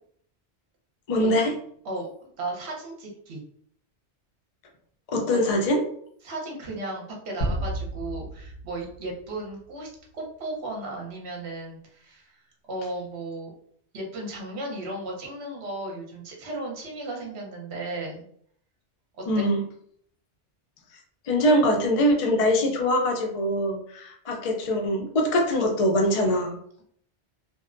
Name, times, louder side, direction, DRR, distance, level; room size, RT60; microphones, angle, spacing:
voice 1, 1.1-1.6 5.1-5.8 19.3-19.6 21.2-26.6, equal, 60° left, 2 dB, 0.3 m, -23 dB
voice 2, 1.8-3.4 5.3-5.4 6.2-13.5 13.9-18.3 19.2-19.5, right 2 dB, 70° right, -1 dB, 1.0 m, -35 dB
sound 1, 7.4-9.4, right 1 dB, 85° left, 1.2 m, -31 dB
2.6 x 2.1 x 2.4 m, 0.63 s
omnidirectional pair, 1.2 m